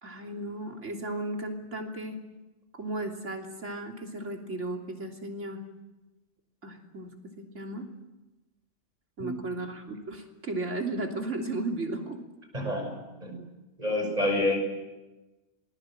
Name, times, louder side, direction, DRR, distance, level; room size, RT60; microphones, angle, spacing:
voice 1, 0.0-2.2 2.7-5.6 6.6-7.1 7.4-7.9 9.2-12.2, right 2 dB, 75° right, 2 dB, 3.6 m, -35 dB
voice 2, 9.2-9.6 12.5-13.4 13.8-14.6, left 1 dB, 30° right, 3 dB, 6.3 m, -29 dB
27.0 x 21.0 x 7.7 m, 1.1 s
omnidirectional pair, 1.3 m